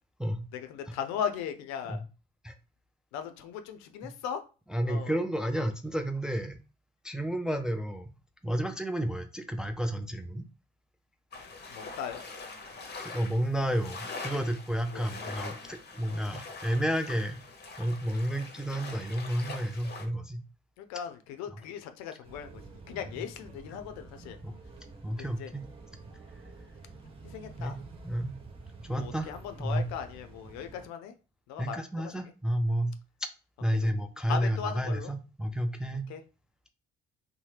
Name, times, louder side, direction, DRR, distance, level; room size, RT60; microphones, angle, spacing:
voice 1, 0.5-2.0 3.1-4.4 4.9-5.2 11.7-12.2 13.6-13.7 14.3-14.5 14.9-15.1 20.8-24.4 25.1-25.5 27.2-27.8 28.9-31.1 31.5-32.3 33.8-33.9 34.2-35.1 36.1-36.2, left 8 dB, 65° left, 9 dB, 0.5 m, -38 dB
voice 2, 4.7-6.6 7.0-8.1 8.4-10.4 13.0-17.4 17.8-20.4 24.4-24.5 25.0-25.6 27.6-27.8 28.0-28.4 28.8-29.3 29.6-29.8 31.6-33.0 33.6-36.0, right 1 dB, ahead, 6 dB, 0.4 m, -31 dB
sound 1, 11.3-20.1, left 3 dB, 35° left, 0.8 m, -43 dB
sound 2, 22.2-30.9, right 3 dB, 20° right, 0.8 m, -49 dB
2.7 x 2.1 x 3.2 m, 0.33 s
hypercardioid pair, 50°, 30 cm